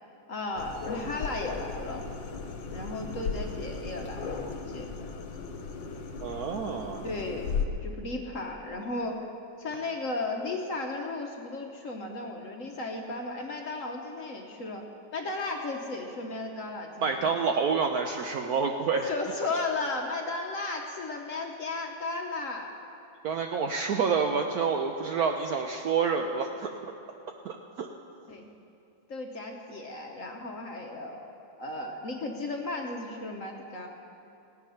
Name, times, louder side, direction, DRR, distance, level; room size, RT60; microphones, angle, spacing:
voice 1, 0.3-2.1 2.7-4.9 7.0-9.3 9.6-14.8 15.1-17.2 19.0-22.7 28.3-28.5 29.1-33.9, left 2 dB, 50° left, 2 dB, 1.1 m, -35 dB
sound 1, 0.6-7.6, left 5 dB, 75° left, 1.7 m, -36 dB
voice 2, 6.2-7.1 17.0-19.1 23.2-26.8 27.4-27.9, right 5 dB, 70° right, 4 dB, 0.9 m, -28 dB
17.0 x 9.5 x 5.6 m, 2.7 s
omnidirectional pair, 2.1 m